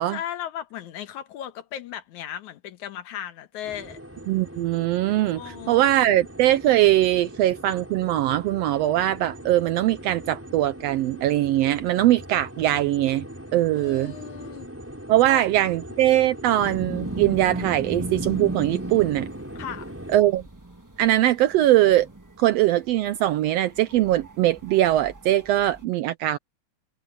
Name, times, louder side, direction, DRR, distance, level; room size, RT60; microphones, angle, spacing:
voice 1, 0.1-4.0 5.3-6.1 13.7-14.7 15.2-15.6 19.6-19.9, left 10 dB, 80° left, 2.7 m, -36 dB
sound 1, 3.6-20.2, equal, 5° right, 6.2 m, -40 dB
voice 2, 4.3-13.2 13.5-14.1 15.1-19.3 20.1-20.4 21.0-22.1 22.4-26.4, right 14 dB, 80° right, 1.5 m, -21 dB
sound 2, 16.6-25.8, right 2 dB, 20° right, 0.4 m, -36 dB
omnidirectional pair, 3.3 m